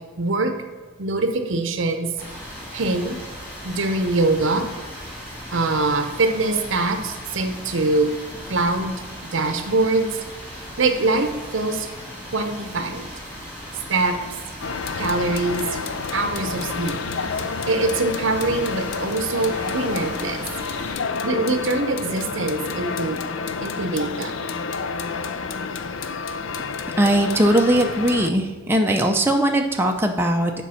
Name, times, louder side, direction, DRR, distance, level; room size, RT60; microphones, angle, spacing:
voice 1, 0.2-0.5 1.0-2.1 2.7-3.2 3.6-4.6 5.5-8.1 8.5-9.0 9.3-10.1 10.5-11.9 12.3-13.1 13.9-14.2 14.9-15.8 16.1-17.0 17.7-20.4 21.2-23.2 23.6-24.4, right 2 dB, 60° right, 7 dB, 0.7 m, -23 dB
sound 1, 2.2-20.9, equal, 10° left, 2.5 m, -38 dB
sound 2, 14.6-28.3, left 5 dB, 60° left, 0.5 m, -29 dB
voice 2, 27.0-30.5, right 1 dB, 10° right, 2 dB, 0.5 m, -19 dB
7.6 x 5.4 x 5.6 m, 1.4 s
head